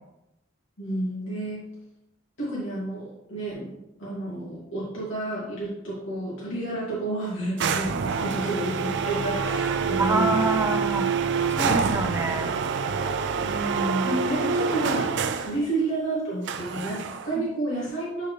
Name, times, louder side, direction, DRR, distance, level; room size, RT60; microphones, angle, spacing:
voice 1, 0.8-1.7 2.4-3.7 4.0-10.6 13.4-15.1 15.4-18.3, right 2 dB, 65° left, -7 dB, 2.5 m, -30 dB
sound 1, 7.6-15.6 16.5-17.4, right 5 dB, 60° right, 0.4 m, -26 dB
voice 2, 10.0-11.1 11.6-12.6, right 2 dB, 10° right, 3 dB, 0.6 m, -26 dB
9.0 x 4.5 x 3.3 m, 0.90 s
head